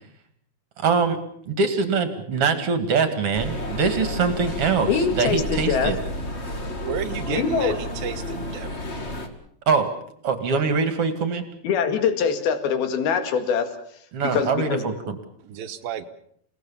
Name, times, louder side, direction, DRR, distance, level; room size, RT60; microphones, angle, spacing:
voice 1, 0.8-1.2 1.5-6.0 9.7-9.9 10.2-11.4 14.1-15.2, right 5 dB, 45° right, 9 dB, 2.7 m, -23 dB
sound 1, 3.3-9.3, left 1 dB, 30° left, 1.4 m, -31 dB
voice 2, 4.9-5.9 7.3-7.7 11.6-13.7 14.3-14.8, left 6 dB, 75° left, 8 dB, 3.9 m, -23 dB
voice 3, 6.8-8.7 15.4-16.1, right 8 dB, 75° right, 9 dB, 2.8 m, -32 dB
29.0 x 18.0 x 7.1 m, 0.67 s
omnidirectional pair, 4.4 m